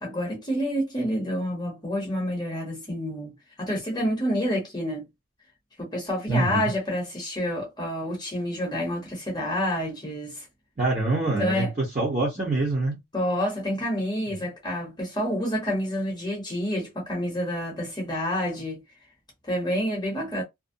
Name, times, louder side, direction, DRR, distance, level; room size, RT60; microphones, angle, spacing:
voice 1, 0.0-5.0 5.8-10.4 11.4-11.7 13.1-18.8 19.5-20.4, equal, 20° left, 0.8 m, -28 dB
voice 2, 6.3-6.7 10.8-13.0, right 2 dB, 35° right, 0.9 m, -25 dB
2.5 x 2.0 x 2.6 m
head